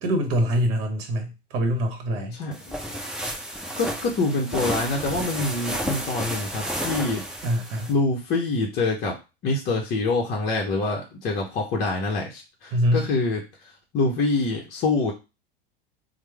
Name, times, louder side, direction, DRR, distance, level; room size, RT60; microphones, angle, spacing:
voice 1, 0.0-2.4 7.4-7.9 12.7-13.1, equal, 50° right, 5 dB, 1.0 m, -24 dB
voice 2, 2.3-2.7 3.8-7.2 7.9-9.2 9.4-15.1, left 3 dB, 35° left, 0 dB, 0.7 m, -26 dB
sound 1, 2.5-7.9, equal, ahead, 0.7 m, -31 dB
3.1 x 2.1 x 3.3 m, 0.28 s
hypercardioid pair, 90°, 31 cm